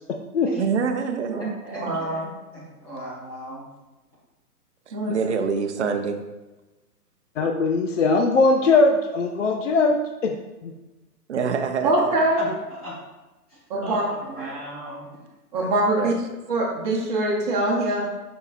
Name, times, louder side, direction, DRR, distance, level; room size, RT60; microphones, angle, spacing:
voice 1, 0.6-1.6 4.9-6.2 11.3-12.1 13.7-14.6 15.6-15.7 16.0-16.1, right 5 dB, 45° right, 6 dB, 0.7 m, -27 dB
voice 2, 1.7-2.3 4.9-5.2 11.8-12.5 13.7-14.0 15.5-16.1 16.5-18.0, right 1 dB, 30° right, -8 dB, 1.1 m, -23 dB
voice 3, 2.5-3.6 12.4-12.5 12.8-13.0 13.8-14.0 14.4-15.1, right 1 dB, 25° left, -8 dB, 1.5 m, -35 dB
voice 4, 7.4-10.4 10.6-10.7, left 3 dB, 55° left, 3 dB, 0.5 m, -20 dB
7.0 x 5.5 x 2.4 m, 1.1 s
hypercardioid pair, 175°, 47 cm